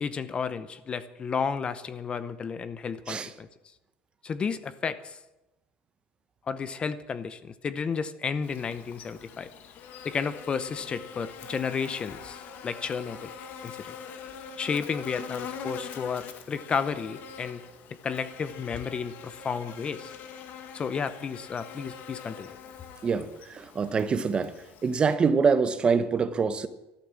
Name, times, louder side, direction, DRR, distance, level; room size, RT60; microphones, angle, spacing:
voice 1, 0.0-3.5 4.2-5.2 6.5-9.5 10.0-13.3 13.6-13.9 14.6-17.6 18.0-20.1 20.7-22.5, left 6 dB, 25° left, 0.7 m, -32 dB
Buzz, 8.4-25.2, left 6 dB, 55° left, 1.6 m, -43 dB
voice 2, 23.0-24.5 24.8-26.7, right 5 dB, 25° right, 0.9 m, -25 dB
13.0 x 12.0 x 7.4 m
cardioid pair, 135°, 4 cm